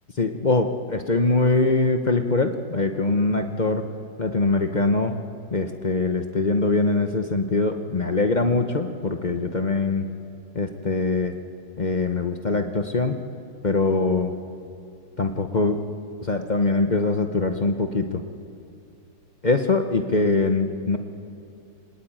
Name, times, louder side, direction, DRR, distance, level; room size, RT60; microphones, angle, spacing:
voice 1, 0.2-3.8 4.2-5.2 5.5-10.0 10.5-11.3 11.8-13.2 13.6-14.3 15.2-15.9 16.2-18.2 19.4-21.0, left 3 dB, 35° left, 6 dB, 0.7 m, -23 dB
23.5 x 20.0 x 8.9 m, 2.6 s
omnidirectional pair, 2.2 m